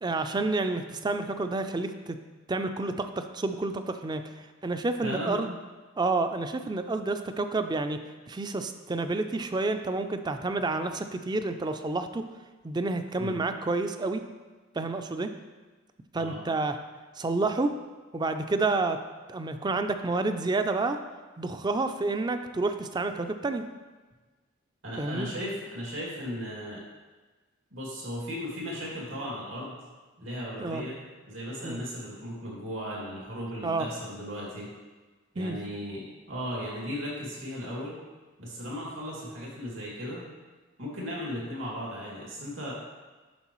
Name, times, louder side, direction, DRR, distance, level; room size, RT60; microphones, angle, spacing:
voice 1, 0.0-2.2 2.5-4.2 4.6-5.6 6.0-8.0 8.3-12.2 12.6-14.2 14.8-15.3 16.1-16.8 17.2-17.7 18.1-19.0 19.3-21.0 21.4-23.6 25.0-25.3 30.6-30.8 31.6-31.8 33.6-33.9 35.4-35.6, right 3 dB, 20° right, 8 dB, 0.4 m, -29 dB
voice 2, 5.0-5.4 13.2-13.4 16.2-16.4 24.8-26.8 27.7-29.8 30.2-31.0 31.3-34.7 35.3-37.9 38.4-40.2 40.8-42.7, equal, 85° right, -4 dB, 2.2 m, -36 dB
9.4 x 6.0 x 3.0 m, 1.3 s
head